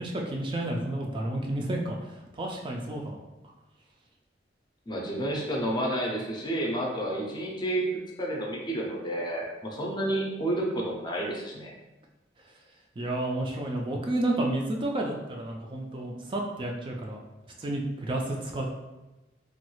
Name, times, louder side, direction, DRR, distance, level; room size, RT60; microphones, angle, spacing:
voice 1, 0.0-2.0 2.4-3.2 13.0-17.2 17.6-18.8, right 1 dB, 30° right, 0 dB, 0.3 m, -31 dB
voice 2, 4.9-7.9 8.2-11.7, right 1 dB, 25° left, -1 dB, 0.5 m, -30 dB
3.0 x 2.3 x 3.0 m, 1.0 s
head